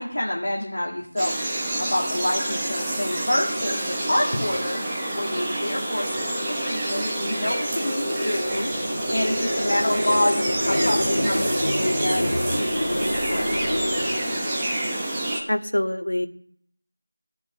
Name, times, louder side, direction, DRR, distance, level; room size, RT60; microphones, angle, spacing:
voice 1, 0.0-1.4 1.8-4.8 5.1-8.7 9.1-13.7, left 1 dB, 40° left, -2 dB, 2.2 m, -27 dB
sound 1, 1.2-15.4, right 1 dB, 5° right, 0.9 m, -28 dB
sound 2, 6.1-15.0, left 1 dB, 80° left, 1.8 m, -28 dB
voice 2, 15.5-16.3, left 1 dB, 55° left, 7 dB, 1.4 m, -24 dB
15.0 x 6.9 x 9.2 m, 0.66 s
figure-of-eight pair, 180°, 0 cm